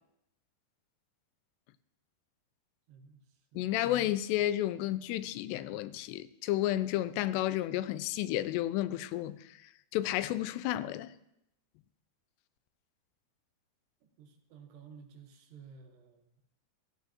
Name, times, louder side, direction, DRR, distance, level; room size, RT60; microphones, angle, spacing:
voice 1, 2.9-3.2 3.5-3.8 14.2-16.2, right 6 dB, 75° right, 3.2 m, -53 dB
voice 2, 3.6-9.6 9.9-11.1, left 14 dB, 85° left, 2.7 m, -32 dB
14.5 x 14.0 x 2.9 m
omnidirectional pair, 4.9 m